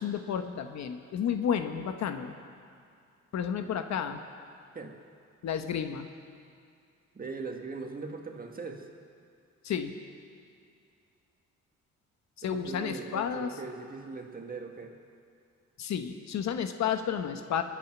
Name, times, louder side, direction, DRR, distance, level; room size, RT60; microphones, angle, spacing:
voice 1, 0.0-2.3 3.3-4.2 5.4-6.1 9.6-9.9 12.4-13.5 15.8-17.6, left 8 dB, 65° left, 8 dB, 1.0 m, -31 dB
voice 2, 7.1-8.8 12.4-14.9, right 4 dB, 30° right, 3 dB, 1.8 m, -40 dB
22.0 x 8.7 x 6.0 m, 2.4 s
cardioid pair, 90°, 30 cm